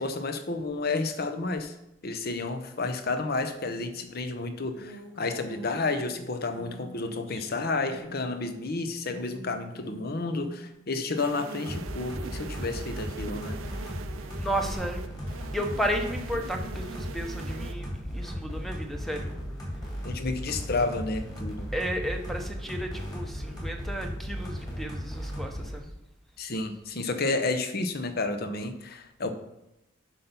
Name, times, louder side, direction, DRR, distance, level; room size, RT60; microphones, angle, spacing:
voice 1, 0.0-1.7 2.0-13.6 20.0-21.7 26.4-29.3, left 3 dB, 50° left, 8 dB, 0.8 m, -31 dB
sound 1, 3.6-10.7, equal, 85° left, 1.8 m, -48 dB
sound 2, 11.2-17.7, right 4 dB, 85° right, 0.6 m, -42 dB
sound 3, 11.7-25.8, equal, 20° left, 2.9 m, -36 dB
voice 2, 14.4-15.0 15.5-19.4 21.7-25.9, equal, ahead, 3 dB, 0.8 m, -33 dB
8.4 x 5.8 x 5.4 m, 0.89 s
head